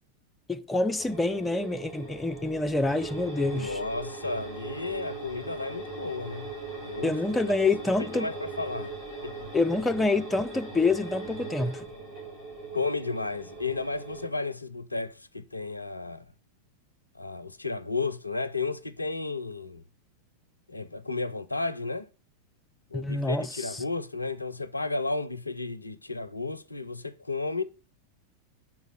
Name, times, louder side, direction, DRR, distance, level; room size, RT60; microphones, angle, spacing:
voice 1, 0.5-3.8 7.0-8.3 9.5-11.9 22.9-23.8, left 3 dB, 10° left, 0.4 m, -27 dB
sound 1, 1.0-14.3, right 3 dB, 40° right, 3.7 m, -40 dB
voice 2, 3.5-6.5 6.8-7.6 8.0-8.9 9.2-9.3 12.7-16.3 17.2-19.8 20.7-22.1 22.9-27.6, left 3 dB, 85° left, 0.4 m, -33 dB
5.9 x 4.0 x 6.2 m
figure-of-eight pair, 90°, 0 cm